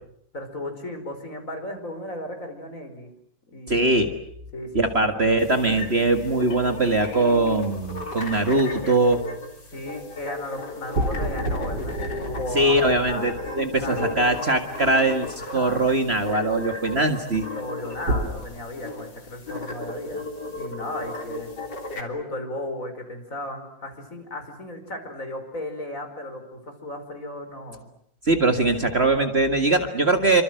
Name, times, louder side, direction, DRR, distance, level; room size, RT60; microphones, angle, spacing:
voice 1, 0.3-3.1 3.5-4.0 4.5-5.4 9.7-13.3 13.8-14.4 15.4-15.8 17.5-21.5 21.9-27.8, left 1 dB, 45° left, 6 dB, 5.3 m, -35 dB
voice 2, 3.7-4.1 4.7-9.2 12.5-17.5 28.3-30.4, right 2 dB, 35° right, 6 dB, 2.1 m, -21 dB
sound 1, 5.4-22.0, left 2 dB, 65° left, 4.2 m, -36 dB
sound 2, 8.0-8.9 10.9-15.3 18.1-18.3, right 1 dB, 70° right, 4.7 m, -30 dB
29.0 x 25.5 x 7.9 m, 0.71 s
omnidirectional pair, 2.0 m